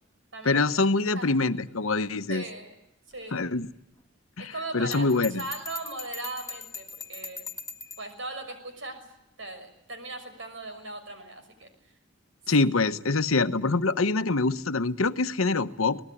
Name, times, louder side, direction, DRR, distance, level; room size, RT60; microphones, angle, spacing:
voice 1, 0.4-2.4 3.3-3.7 4.4-5.4 12.5-16.0, left 3 dB, 90° left, 11 dB, 1.1 m, -25 dB
voice 2, 2.3-2.8 3.1-3.5 4.4-7.5 8.0-9.1 9.4-11.7 12.5-12.6, right 2 dB, 65° right, 8 dB, 5.9 m, -38 dB
Bell, 4.9-8.1, left 3 dB, 15° left, 1.7 m, -40 dB
24.5 x 19.5 x 10.0 m, 0.86 s
head